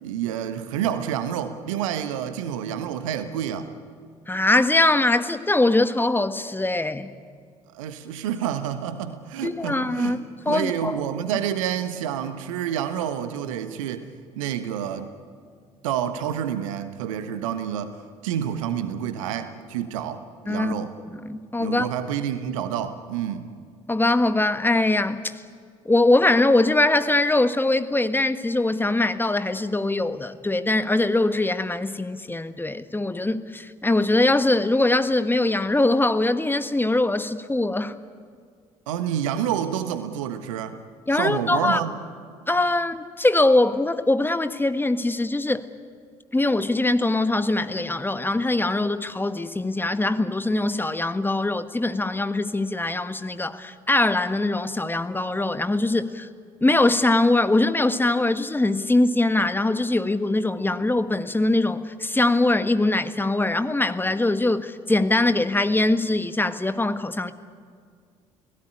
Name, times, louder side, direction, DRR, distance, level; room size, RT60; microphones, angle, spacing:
voice 1, 0.0-3.7 7.7-10.2 10.5-14.1 14.3-15.1 15.8-17.9 18.2-20.2 20.5-20.9 21.6-23.5 38.9-40.8 41.1-41.9, right 9 dB, 70° right, 10 dB, 1.4 m, -28 dB
voice 2, 4.3-7.1 9.4-10.2 10.4-11.0 20.5-20.7 21.2-21.9 23.9-25.3 25.8-37.9 41.1-41.8 42.5-45.7 46.3-56.3 56.6-67.3, left 2 dB, 10° left, 11 dB, 1.4 m, -22 dB
29.5 x 17.5 x 10.0 m, 2.1 s
figure-of-eight pair, 50°, 17 cm